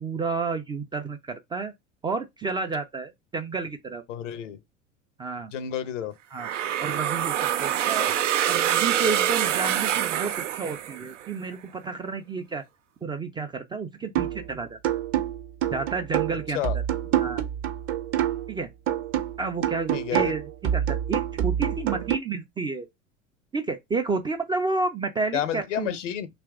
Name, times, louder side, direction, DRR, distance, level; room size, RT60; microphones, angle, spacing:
voice 1, 0.0-1.7 2.0-4.0 5.2-5.5 6.3-6.5 6.8-8.1 8.5-12.6 13.0-14.8 15.7-16.8 17.2-17.4 18.5-18.7 19.4-20.4 20.7-22.9 23.5-26.0, right 4 dB, 15° right, 0.3 m, -30 dB
voice 2, 4.1-4.6 5.5-6.1 8.0-8.1 16.5-16.8 19.9-20.3 25.3-26.3, left 10 dB, 70° left, 0.7 m, -30 dB
sound 1, 6.4-11.3, right 10 dB, 75° right, 0.5 m, -25 dB
sound 2, 14.1-14.5 14.8-18.5 18.9-22.1, right 11 dB, 35° right, 0.7 m, -27 dB
2.8 x 2.5 x 3.4 m
figure-of-eight pair, 75°, 38 cm